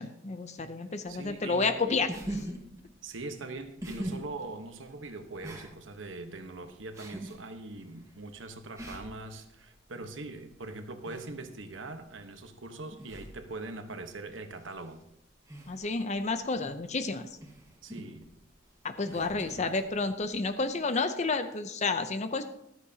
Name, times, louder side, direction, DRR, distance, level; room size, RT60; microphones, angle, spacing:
voice 1, 0.0-2.1 15.7-17.3 18.8-22.4, left 3 dB, 35° left, 9 dB, 0.6 m, -30 dB
voice 2, 1.1-2.1 3.0-15.0 17.8-18.3 19.1-19.8, right 2 dB, 75° right, 7 dB, 1.2 m, -42 dB
sound 1, 1.3-20.7, right 1 dB, 15° right, 1.5 m, -45 dB
13.5 x 13.0 x 2.9 m, 0.78 s
head